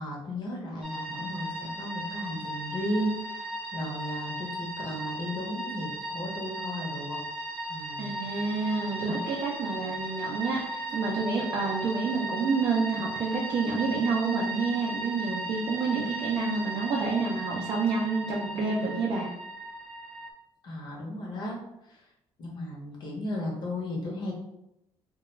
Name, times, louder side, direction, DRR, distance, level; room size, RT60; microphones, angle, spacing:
voice 1, 0.0-7.2 7.7-8.1 20.6-21.6 21.8-22.1 22.4-24.3, left 1 dB, 50° left, -2 dB, 0.7 m, -35 dB
sound 1, 0.8-20.3, right 1 dB, 5° right, 0.7 m, -36 dB
voice 2, 8.0-19.3, right 4 dB, 45° right, -2 dB, 0.4 m, -29 dB
2.3 x 2.2 x 3.0 m, 0.85 s
cardioid pair, 160°, 10 cm